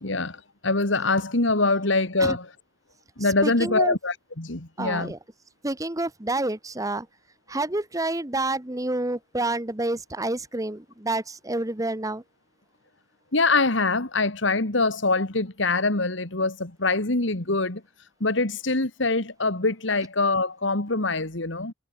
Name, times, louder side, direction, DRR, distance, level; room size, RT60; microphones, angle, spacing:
voice 1, 0.0-2.5 3.2-5.1 13.3-17.8 18.2-21.7, left 3 dB, 65° left, 2.3 m, -24 dB
voice 2, 3.4-4.0 4.8-5.2 5.6-7.0 7.5-12.2, right 2 dB, 15° right, 1.2 m, -28 dB
head